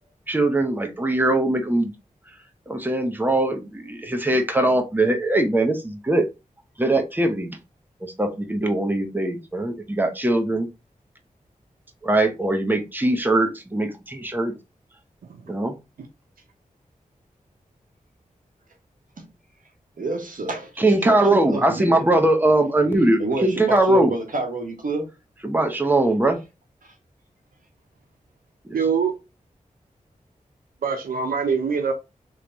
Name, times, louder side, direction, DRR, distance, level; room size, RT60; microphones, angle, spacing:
voice 1, 0.3-1.9 2.7-6.3 6.8-7.5 8.0-10.7 12.0-14.5 15.5-15.7 20.8-24.1 25.4-26.4, right 2 dB, 15° right, 1.0 m, -21 dB
voice 2, 20.0-22.4 23.2-25.1 26.8-26.9, right 3 dB, 70° right, 1.4 m, -29 dB
voice 3, 28.7-29.2 30.8-31.9, right 6 dB, 90° right, 0.6 m, -23 dB
3.3 x 3.2 x 4.0 m
cardioid pair, 50°, 14 cm